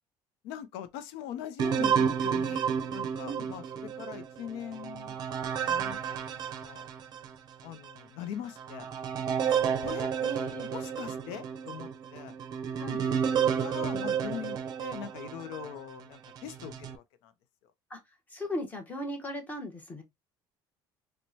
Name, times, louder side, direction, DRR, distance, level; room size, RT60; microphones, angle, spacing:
voice 1, 0.4-6.2 6.6-6.9 7.6-8.9 9.4-10.1 10.7-12.3 13.0-17.3 17.6-17.7, left 10 dB, 90° left, 0.5 m, -42 dB
sound 1, 1.6-7.3 7.9-8.0 8.6-15.8 16.4-17.0, right 7 dB, 45° right, 0.5 m, -31 dB
voice 2, 10.2-10.7 12.8-13.0 17.9-18.0 18.3-20.0, left 1 dB, 15° left, 1.0 m, -37 dB
4.4 x 2.1 x 2.7 m
cardioid pair, 150°, 9 cm